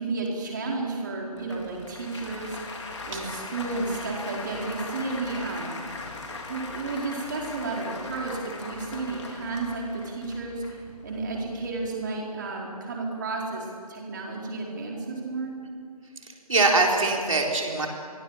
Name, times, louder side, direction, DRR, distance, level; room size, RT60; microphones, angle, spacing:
voice 1, 0.0-2.8 3.1-5.8 6.5-10.6 11.0-15.6, right 3 dB, 30° right, -1 dB, 4.3 m, -32 dB
Applause, 1.3-11.9, left 3 dB, 45° left, 3.8 m, -40 dB
voice 2, 16.2-17.9, right 3 dB, 55° right, 0 dB, 3.9 m, -23 dB
28.5 x 23.0 x 7.4 m, 2.3 s
figure-of-eight pair, 160°, 20 cm